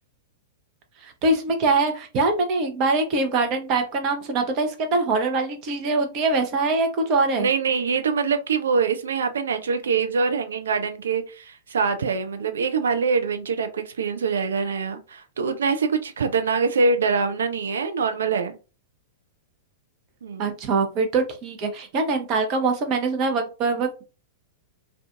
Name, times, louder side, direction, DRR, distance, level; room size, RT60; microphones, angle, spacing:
voice 1, 1.0-7.5 20.4-24.0, right 3 dB, 35° right, 0.7 m, -23 dB
voice 2, 7.4-18.6 20.2-20.6, right 5 dB, 65° right, 0.4 m, -24 dB
2.4 x 2.3 x 2.5 m
figure-of-eight pair, 100°, 0 cm